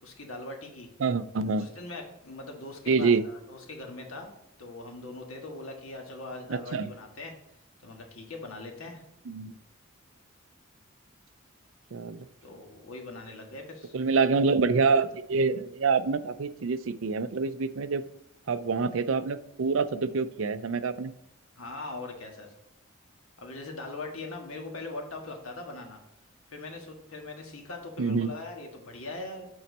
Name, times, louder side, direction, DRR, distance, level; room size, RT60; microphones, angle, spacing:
voice 1, 0.0-0.9 1.6-4.3 4.6-7.3 7.8-9.0 12.4-14.0 21.6-22.5 23.4-26.0 26.5-29.5, left 2 dB, 85° left, 2 dB, 1.7 m, -41 dB
voice 2, 1.0-1.7 2.9-3.2 6.5-6.9 9.3-9.5 11.9-12.3 13.9-18.0 18.5-21.1 28.0-28.3, right 4 dB, 75° right, 13 dB, 0.5 m, -26 dB
8.7 x 4.4 x 4.1 m, 0.84 s
head